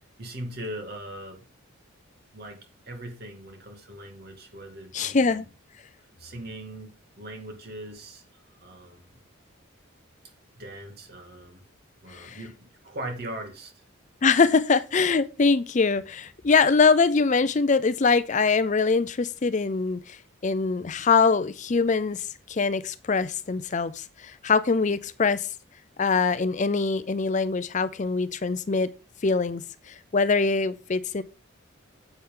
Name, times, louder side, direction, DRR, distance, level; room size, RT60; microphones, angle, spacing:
voice 1, 0.2-1.4 2.3-5.5 6.2-6.9 7.2-9.2 10.6-11.6 12.0-13.8, right 1 dB, 50° right, 2.3 m, -40 dB
voice 2, 4.9-5.5 12.1-12.4 14.2-25.5 26.0-28.9 29.2-31.2, left 4 dB, 35° left, 0.5 m, -23 dB
10.0 x 7.9 x 3.8 m
head